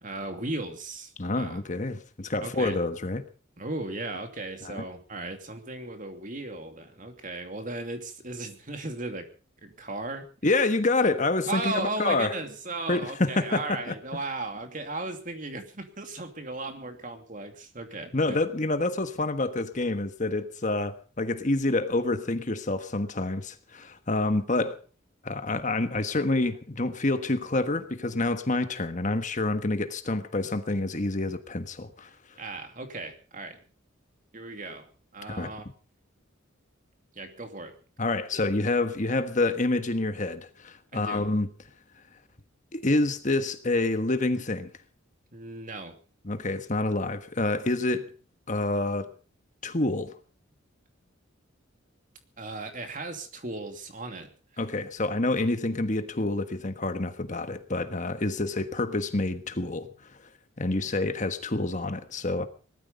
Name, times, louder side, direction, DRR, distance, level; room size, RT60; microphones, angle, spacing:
voice 1, 0.0-1.6 2.4-2.8 3.6-9.3 9.6-10.3 11.5-18.4 32.4-33.6 34.3-35.6 37.1-37.8 38.3-38.4 40.9-41.3 45.3-46.0 52.4-54.6, right 2 dB, 40° right, 2.7 m, -36 dB
voice 2, 1.2-3.2 4.6-4.8 10.4-12.4 12.9-13.9 18.1-24.8 25.2-32.1 35.3-35.5 38.0-41.5 42.7-44.7 46.2-48.1 48.5-49.1 49.6-50.1 54.6-59.9 60.6-62.5, left 2 dB, 40° left, 1.3 m, -27 dB
19.5 x 13.5 x 5.4 m
head